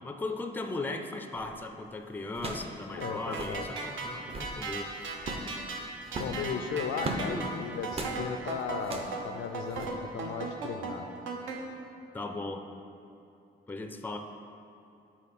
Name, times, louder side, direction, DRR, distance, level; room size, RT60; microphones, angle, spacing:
voice 1, 0.0-4.9 7.2-7.5 12.1-12.7 13.7-14.2, left 2 dB, 10° left, 6 dB, 0.4 m, -37 dB
sound 1, 1.4-1.6 2.3-2.7 3.0-3.1 3.3-3.6 4.1-4.6 5.2-5.5 6.1-7.3 7.9-8.2 8.8-9.2 9.7-9.9, right 2 dB, 30° right, 0.7 m, -37 dB
voice 2, 2.9-3.7 6.2-11.1, left 6 dB, 75° left, 7 dB, 0.5 m, -36 dB
sound 2, 3.0-11.6, right 4 dB, 75° right, 0.8 m, -37 dB
7.3 x 4.3 x 4.2 m, 2.7 s
cardioid pair, 90°, 20 cm